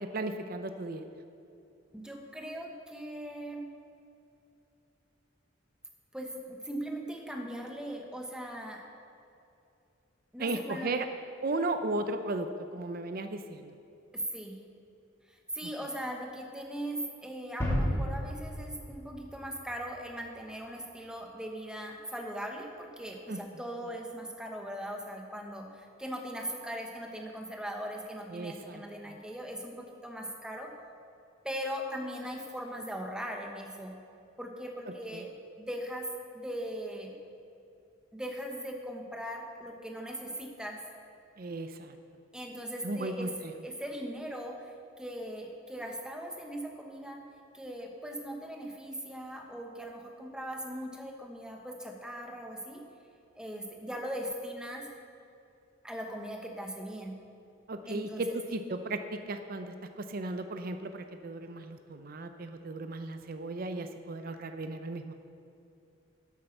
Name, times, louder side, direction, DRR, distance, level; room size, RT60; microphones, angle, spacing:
voice 1, 0.1-1.0 10.4-11.1 11.4-13.7 23.3-23.4 28.3-29.2 35.1-35.2 41.4-41.9 42.8-43.3 57.7-65.1, right 2 dB, 45° right, 8 dB, 0.5 m, -35 dB
voice 2, 1.9-3.7 6.1-8.8 10.3-10.9 14.1-14.6 15.3-30.7 31.4-34.0 34.4-36.1 36.3-37.1 38.1-40.8 42.3-43.3 43.6-47.3 47.5-52.8 53.3-54.9 55.8-57.2 57.9-58.4, equal, 5° right, 2 dB, 1.0 m, -39 dB
sound 1, 17.6-20.3, equal, 15° left, 2.6 m, -33 dB
10.0 x 8.4 x 6.5 m, 2.7 s
head